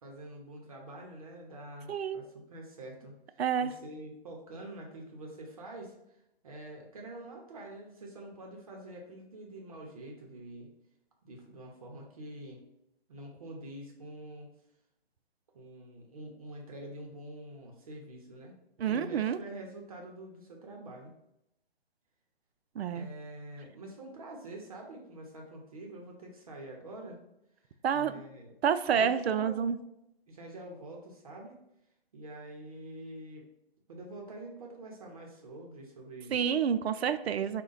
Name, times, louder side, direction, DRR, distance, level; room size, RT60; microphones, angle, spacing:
voice 1, 0.0-10.7 11.2-12.6 13.1-14.5 15.5-21.1 22.9-27.2 27.6-28.5 28.9-29.7 30.3-31.6 32.1-33.5 33.9-36.4, right 1 dB, 35° right, 0 dB, 0.7 m, -46 dB
voice 2, 1.9-2.2 3.4-3.7 18.8-19.4 22.8-23.1 27.8-28.1 28.6-29.8 36.3-37.6, right 7 dB, 90° right, 11 dB, 0.5 m, -28 dB
5.0 x 2.2 x 3.9 m, 0.83 s
hypercardioid pair, 165°, 30 cm